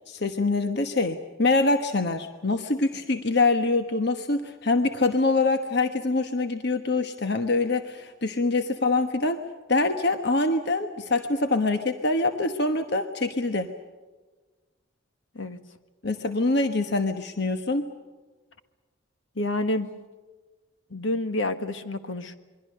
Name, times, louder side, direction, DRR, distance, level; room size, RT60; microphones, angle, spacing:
voice 1, 0.1-9.4 9.7-13.7 16.0-17.9, left 3 dB, 55° left, 7 dB, 1.2 m, -24 dB
voice 2, 19.3-19.9 20.9-22.4, left 1 dB, 70° left, 9 dB, 1.5 m, -28 dB
27.5 x 22.5 x 6.6 m, 1.3 s
head